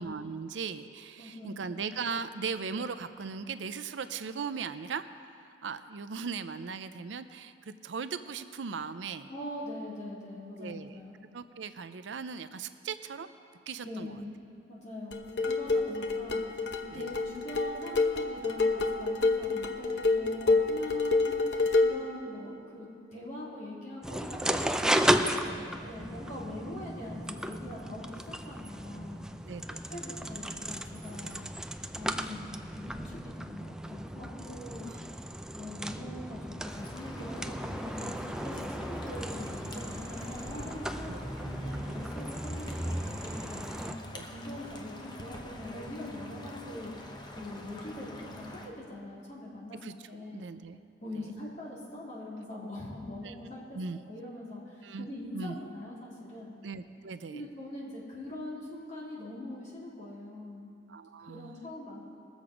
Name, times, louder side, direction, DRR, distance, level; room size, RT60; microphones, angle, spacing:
voice 1, 0.0-9.3 10.6-11.0 11.3-13.3 13.7-14.1 16.9-17.1 26.7-26.8 29.4-29.9 34.9-35.0 41.1-41.2 44.1-44.3 49.8-49.9 50.3-50.8 51.1-51.3 53.2-53.3 53.7-54.0 54.8-55.6 56.6-57.4 60.9-61.6, right 5 dB, 80° right, 12 dB, 0.5 m, -38 dB
voice 2, 1.2-1.6 9.3-11.1 13.8-14.4 14.7-29.2 29.9-31.5 31.9-34.9 35.5-46.9 47.3-49.8 50.1-50.5 51.0-53.8 54.0-56.5 57.3-60.7 61.3-62.0, left 1 dB, 45° left, -6 dB, 3.1 m, -42 dB
sound 1, 15.1-22.1, left 3 dB, 65° left, 0.8 m, -28 dB
sound 2, 24.0-43.9, right 1 dB, 5° right, 0.4 m, -35 dB
sound 3, 36.6-48.7, left 1 dB, 25° left, 0.9 m, -46 dB
20.5 x 7.2 x 5.0 m, 2.4 s
head